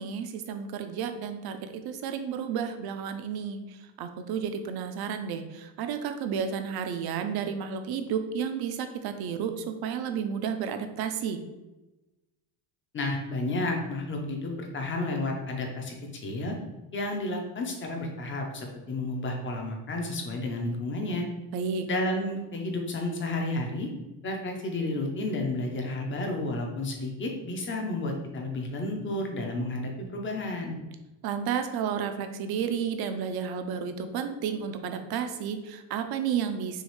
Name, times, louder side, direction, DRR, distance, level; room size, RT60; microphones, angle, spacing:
voice 1, 0.0-3.6 4.0-11.4 21.5-21.9 31.2-36.8, right 7 dB, 50° right, 8 dB, 0.5 m, -32 dB
voice 2, 12.9-15.9 16.2-16.6 16.9-21.3 21.9-23.9 24.2-30.8, left 2 dB, 25° left, 2 dB, 0.6 m, -31 dB
6.3 x 2.4 x 3.1 m, 1.0 s
cardioid pair, 165°, 49 cm